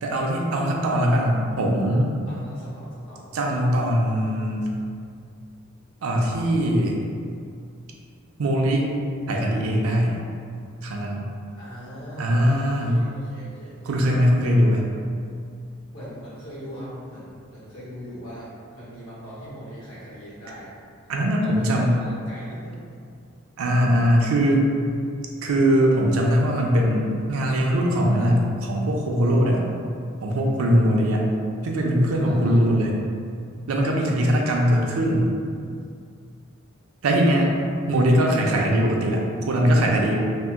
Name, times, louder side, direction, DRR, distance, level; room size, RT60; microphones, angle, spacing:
voice 1, 0.0-2.1 3.3-4.7 6.0-7.0 8.4-8.9 9.3-10.1 10.8-11.3 12.2-13.0 13.8-14.9 21.1-22.0 23.6-24.7 25.4-29.7 30.2-31.3 31.6-32.9 33.7-35.3 37.0-37.5 37.9-40.2, equal, 80° right, -1 dB, 0.4 m, -21 dB
voice 2, 2.3-3.3 11.5-13.7 15.9-20.7 21.4-22.9 32.2-32.6 34.0-34.2, equal, 80° left, -9 dB, 1.2 m, -40 dB
2.7 x 2.0 x 3.4 m, 2.3 s
head